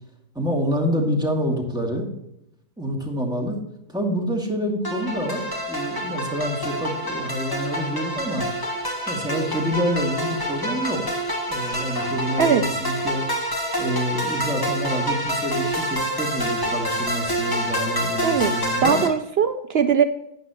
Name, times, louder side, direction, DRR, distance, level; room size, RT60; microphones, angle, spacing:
voice 1, 0.3-2.1 2.8-3.6 3.9-8.5 9.1-11.0 11.5-13.3 13.8-19.0, equal, 5° right, -2 dB, 2.3 m, -27 dB
sound 1, 4.8-19.1, right 1 dB, 15° left, 1.4 m, -27 dB
voice 2, 18.2-18.5 18.8-20.0, right 7 dB, 60° right, 9 dB, 0.7 m, -20 dB
12.0 x 9.2 x 3.0 m, 0.81 s
omnidirectional pair, 1.4 m